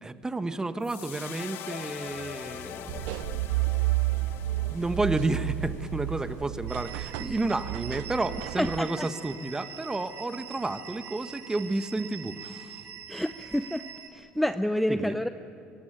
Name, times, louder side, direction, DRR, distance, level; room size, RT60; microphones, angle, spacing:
voice 1, 0.0-3.3 4.7-12.8 14.9-15.1, right 2 dB, 15° right, 10 dB, 1.3 m, -31 dB
sound 1, 0.8-7.1, left 10 dB, 65° left, 1.1 m, -43 dB
sound 2, 2.9-8.8, right 18 dB, 85° right, 0.4 m, -31 dB
sound 3, 6.7-14.1, right 8 dB, 60° right, 3.0 m, -44 dB
voice 2, 8.6-9.1 13.1-13.8 14.1-15.3, equal, ahead, 10 dB, 0.6 m, -28 dB
23.5 x 17.5 x 8.9 m, 2.6 s
supercardioid pair, 85°, 4 cm